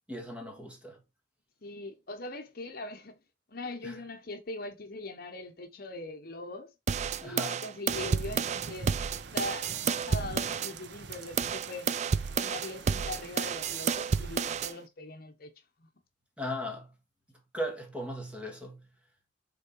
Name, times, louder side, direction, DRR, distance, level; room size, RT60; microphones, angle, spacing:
voice 1, 0.1-1.0 3.8-4.0 7.2-7.6 16.4-16.9 17.5-18.9, equal, 5° right, 1.7 m, -37 dB
voice 2, 1.6-3.2 3.5-6.7 7.2-11.9 12.3-15.5 15.8-15.9, left 2 dB, 55° left, 1.0 m, -41 dB
sound 1, 6.9-10.7 11.1-14.7, right 6 dB, 40° right, 0.3 m, -30 dB
sound 2, 7.9-14.7, right 4 dB, 65° right, 0.6 m, -46 dB
6.3 x 3.8 x 4.7 m
head